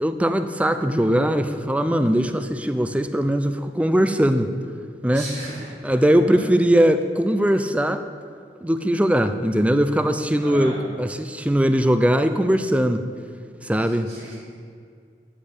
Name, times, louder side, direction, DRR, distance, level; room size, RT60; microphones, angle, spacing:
voice 1, 0.0-4.5 5.0-5.3 5.8-8.0 8.6-13.0 13.6-14.1, equal, 10° right, 9 dB, 0.5 m, -20 dB
voice 2, 5.1-6.4 10.4-10.8 13.8-14.4, right 1 dB, 75° right, -4 dB, 1.9 m, -37 dB
13.5 x 5.4 x 8.5 m, 2.2 s
head